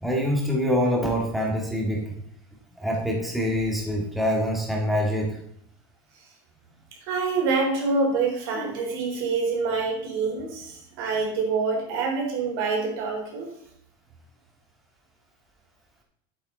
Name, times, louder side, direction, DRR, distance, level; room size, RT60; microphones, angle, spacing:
voice 1, 0.0-2.2 2.8-5.4, equal, ahead, -2 dB, 1.9 m, -25 dB
voice 2, 7.0-13.5, right 4 dB, 80° right, -1 dB, 3.6 m, -26 dB
8.3 x 8.1 x 3.9 m, 0.70 s
supercardioid pair, 145°, 12 cm